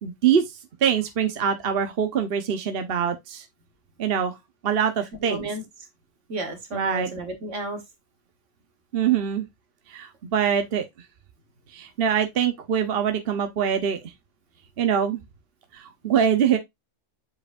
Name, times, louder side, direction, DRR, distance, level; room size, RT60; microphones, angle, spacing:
voice 1, 0.0-3.4 4.0-4.3 4.6-5.4 6.7-7.1 8.9-9.5 9.9-10.8 11.7-14.0 14.8-15.2 15.7-16.6, right 8 dB, 55° right, 1.1 m, -24 dB
voice 2, 5.2-5.6 6.3-7.8, right 1 dB, 75° right, 1.9 m, -32 dB
7.7 x 4.8 x 2.5 m
omnidirectional pair, 1.3 m